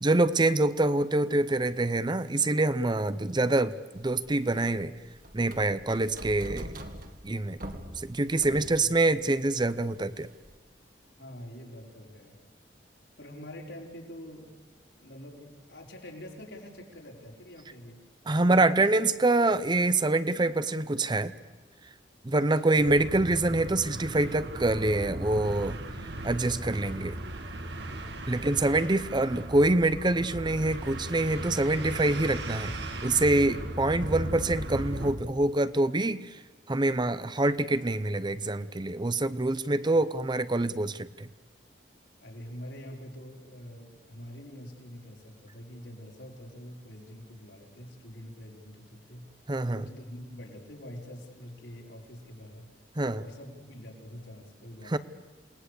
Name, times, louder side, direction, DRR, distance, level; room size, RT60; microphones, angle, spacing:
voice 1, 0.0-4.9 5.3-6.7 7.2-7.6 8.0-10.3 18.3-21.3 22.2-25.8 26.2-27.1 28.3-32.7 33.0-36.2 36.7-41.3 49.5-49.8 53.0-53.2 54.9-55.0, right 2 dB, 25° right, 14 dB, 0.7 m, -25 dB
sound 1, 4.0-10.6, equal, 50° right, 2.3 m, -44 dB
voice 2, 11.2-12.4 13.2-14.5 15.0-18.0 18.2-19.0 22.7-22.9 28.1-28.9 39.7-40.0 42.2-49.3 49.7-52.7 53.2-55.0, equal, 75° left, 0 dB, 5.0 m, -45 dB
sound 2, 22.8-35.1, right 1 dB, 70° right, 2.3 m, -37 dB
28.0 x 19.0 x 8.3 m, 1.3 s
head